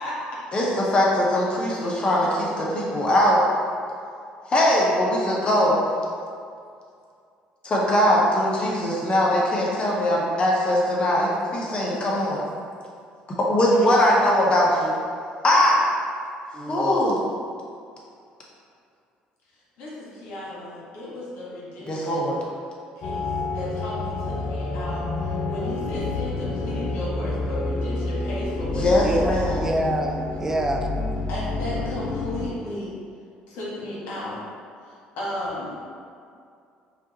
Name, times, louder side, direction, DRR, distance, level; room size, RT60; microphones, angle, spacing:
voice 1, 0.0-0.4 8.0-8.2 19.8-22.3 23.0-29.4 31.3-33.0 33.5-34.5 34.9-35.8, left 1 dB, 75° left, -6 dB, 1.4 m, -34 dB
voice 2, 0.5-3.4 4.4-5.8 7.6-12.5 13.5-14.7 15.4-15.8 16.7-17.2 21.8-22.4 28.7-29.6, left 1 dB, 35° left, -4 dB, 0.8 m, -21 dB
voice 3, 16.5-17.3 29.0-30.9, right 1 dB, 15° right, 2 dB, 0.4 m, -27 dB
sound 1, 23.0-32.5, left 3 dB, 60° left, 0.5 m, -28 dB
5.1 x 2.4 x 2.9 m, 2.3 s
cardioid pair, 100°, 3 cm